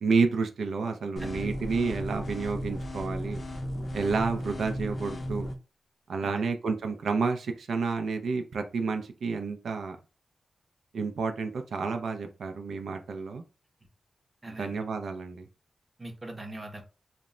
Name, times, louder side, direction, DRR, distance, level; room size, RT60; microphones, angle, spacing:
voice 1, 0.0-3.4 3.9-5.5 6.1-10.0 10.9-13.4 14.5-15.5, right 4 dB, 80° right, 6 dB, 0.3 m, -30 dB
sound 1, 1.2-5.5, equal, 35° left, 0.4 m, -35 dB
voice 2, 1.2-1.5 6.2-6.5 14.4-14.7 16.0-16.8, right 1 dB, 20° right, 3 dB, 0.6 m, -42 dB
2.1 x 2.0 x 3.6 m, 0.32 s
wide cardioid pair, 140°, 0 cm